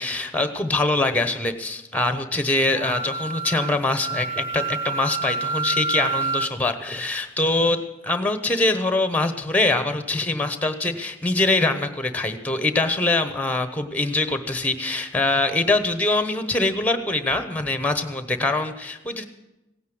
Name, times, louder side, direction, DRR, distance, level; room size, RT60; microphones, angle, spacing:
voice 1, 0.0-19.2, left 2 dB, 10° left, 10 dB, 1.1 m, -23 dB
Wind instrument woodwind instrument, 2.8-6.5, right 4 dB, 30° right, 1.0 m, -28 dB
17.0 x 9.5 x 7.8 m, 0.96 s
head